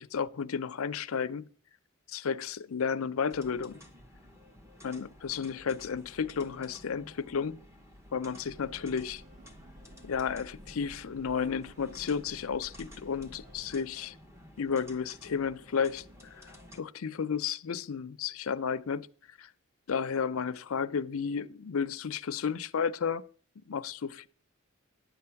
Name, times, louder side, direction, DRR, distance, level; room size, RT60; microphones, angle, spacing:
voice 1, 0.0-1.5 2.1-3.8 4.8-7.6 8.1-9.2 10.0-14.2 14.6-16.0 16.4-19.1 19.4-19.5 19.9-23.2 23.7-24.3, left 6 dB, 75° left, 0.5 m, -32 dB
sound 1, 3.3-16.8, left 1 dB, 15° right, 0.9 m, -53 dB
Breathing / Train, 8.3-14.0, equal, 35° right, 1.1 m, -54 dB
10.5 x 7.6 x 5.8 m
head